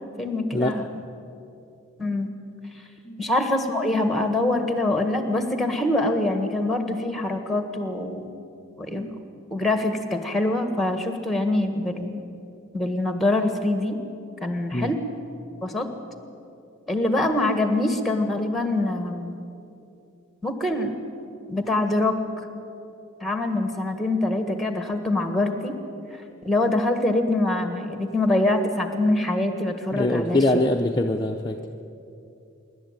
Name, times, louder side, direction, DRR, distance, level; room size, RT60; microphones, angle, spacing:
voice 1, 0.2-0.9 2.0-2.3 3.2-8.3 8.8-9.1 9.5-12.2 12.7-14.0 14.4-15.0 15.6-15.9 16.9-19.4 20.4-20.9 21.5-22.2 23.2-25.8 26.4-30.6, left 2 dB, ahead, 6 dB, 1.5 m, -24 dB
voice 2, 29.9-31.7, left 1 dB, 20° left, 1 dB, 0.7 m, -23 dB
25.0 x 11.5 x 8.9 m, 2.7 s
head